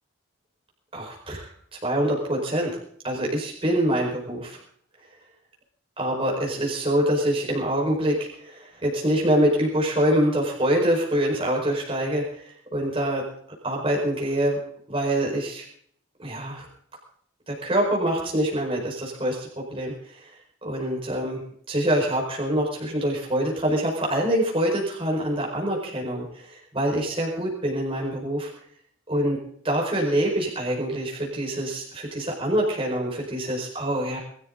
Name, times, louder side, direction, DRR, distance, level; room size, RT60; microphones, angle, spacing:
voice 1, 0.9-2.8 3.0-4.6 6.0-13.2 13.6-14.6 14.9-15.6 16.2-16.7 17.5-20.3 20.6-21.4 21.7-28.5 29.1-29.4 29.6-34.2, right 1 dB, 25° right, -2 dB, 4.9 m, -25 dB
22.0 x 13.5 x 3.9 m, 0.63 s
head